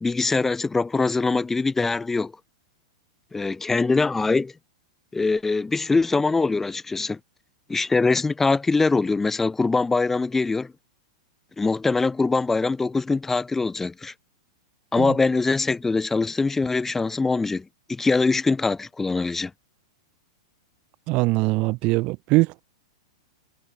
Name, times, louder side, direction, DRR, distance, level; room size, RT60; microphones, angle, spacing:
voice 1, 0.0-2.3 3.3-4.5 5.1-7.2 7.7-10.7 11.6-14.1 14.9-19.5, left 3 dB, 10° left, 1.5 m, -23 dB
voice 2, 21.1-22.6, right 23 dB, 45° right, 0.5 m, -22 dB
hypercardioid pair, 105°, 3 cm